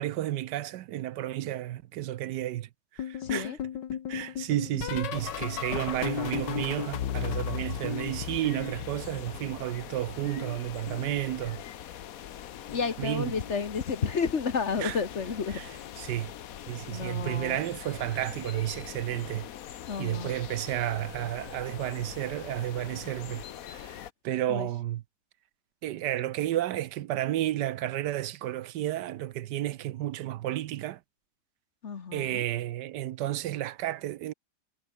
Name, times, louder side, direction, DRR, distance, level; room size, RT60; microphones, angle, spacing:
voice 1, 0.0-3.5 4.1-11.6 13.0-13.3 14.8-15.0 15.5-15.7 16.0-16.3 16.7-19.5 20.0-23.4 23.7-25.0 25.8-31.0 32.1-34.3, right 13 dB, 75° right, 1.3 m, -32 dB
sound 1, 3.0-9.8 10.0-11.6 12.6-13.0 13.2-13.6 15.1-15.4 15.7-16.0 17.5-17.6, left 9 dB, 85° left, 1.9 m, -36 dB
voice 2, 3.2-3.6 12.7-15.6 16.9-17.6 19.9-20.3 24.5-24.7 31.8-32.4, left 5 dB, 45° left, 1.5 m, -31 dB
sound 2, 5.1-24.1, left 11 dB, 60° left, 1.2 m, -43 dB
omnidirectional pair, 1.9 m